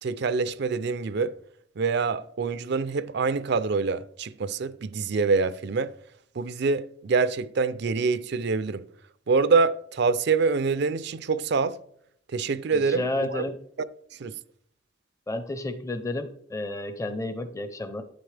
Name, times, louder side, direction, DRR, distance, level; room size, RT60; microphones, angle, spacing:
voice 1, 0.0-1.3 1.8-6.0 6.3-8.9 9.3-11.8 12.3-13.5 14.2-14.4, right 4 dB, 60° right, 0.5 m, -25 dB
voice 2, 12.7-13.6 15.3-18.0, left 2 dB, 15° left, 0.6 m, -31 dB
11.5 x 8.5 x 3.3 m
head